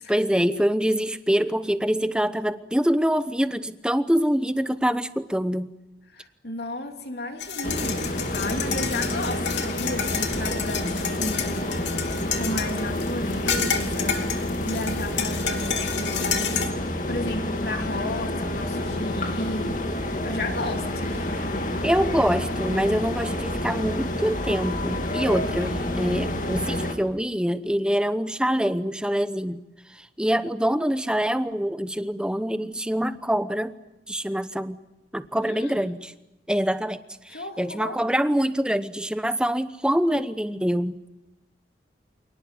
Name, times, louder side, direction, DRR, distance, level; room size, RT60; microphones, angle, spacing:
voice 1, 0.0-5.7 21.8-33.8 34.1-34.8 35.1-36.1 36.5-41.0, equal, 5° right, 12 dB, 0.9 m, -25 dB
voice 2, 6.1-12.0 12.2-16.7 17.1-19.8 20.2-21.5 35.4-35.9 37.3-38.0, left 1 dB, 60° left, 4 dB, 3.2 m, -33 dB
sound 1, 7.4-16.7, left 7 dB, 80° left, 2.6 m, -30 dB
sound 2, 7.6-26.9, left 1 dB, 45° left, 2.3 m, -29 dB
27.5 x 19.0 x 9.4 m, 0.98 s
head